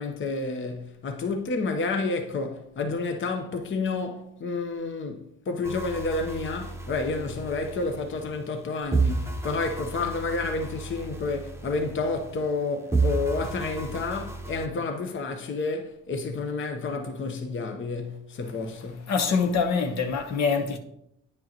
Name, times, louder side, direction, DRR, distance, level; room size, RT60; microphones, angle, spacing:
voice 1, 0.0-19.1, left 3 dB, 40° left, 0.9 m, -30 dB
sound 1, 5.6-8.6 8.9-12.6 12.9-14.7, right 3 dB, 10° right, 0.8 m, -32 dB
voice 2, 19.1-20.8, left 5 dB, 60° left, 1.0 m, -24 dB
9.3 x 5.4 x 2.9 m
supercardioid pair, 75°, 31 cm